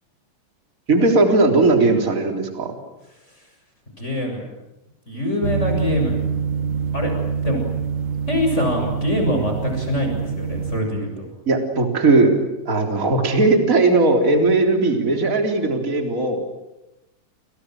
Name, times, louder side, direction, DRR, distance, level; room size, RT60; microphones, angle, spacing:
voice 1, 0.9-2.7 11.5-12.3 12.7-16.4, right 3 dB, 25° right, 3 dB, 3.9 m, -18 dB
voice 2, 4.0-4.4 5.1-6.2 6.9-7.1 7.4-7.6 8.3-11.3, left 1 dB, 20° left, 2 dB, 7.3 m, -24 dB
sound 1, 5.4-10.8, right 6 dB, 60° right, 2.6 m, -25 dB
29.5 x 29.0 x 6.4 m, 0.94 s
omnidirectional pair, 3.9 m